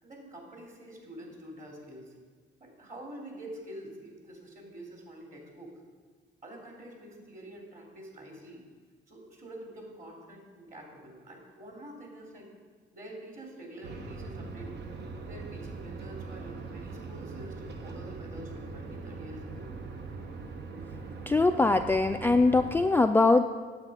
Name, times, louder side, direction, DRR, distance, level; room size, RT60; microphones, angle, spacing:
voice 1, 0.0-2.2 2.6-5.8 6.4-8.6 9.1-12.5 12.9-14.8 15.3-19.7, right 1 dB, 40° right, -1 dB, 3.2 m, -46 dB
sound 1, 13.8-22.8, right 4 dB, 60° right, 1.1 m, -41 dB
voice 2, 21.3-23.4, left 3 dB, 10° left, 6 dB, 0.3 m, -22 dB
9.0 x 7.9 x 5.6 m, 1.5 s
cardioid pair, 90°, 20 cm